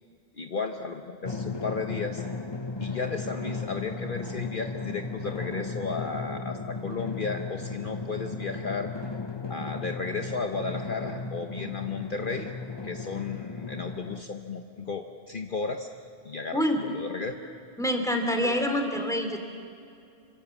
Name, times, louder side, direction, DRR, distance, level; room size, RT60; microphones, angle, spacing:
voice 1, 0.4-2.2 2.8-8.9 9.5-12.5 12.8-15.9 16.2-17.4 18.4-18.6, left 4 dB, 50° left, 5 dB, 1.2 m, -34 dB
Drum, 1.2-14.2, left 3 dB, 25° left, 0.9 m, -36 dB
voice 2, 17.8-19.4, equal, 5° left, 4 dB, 3.0 m, -26 dB
27.5 x 25.0 x 7.3 m, 2.5 s
omnidirectional pair, 1.1 m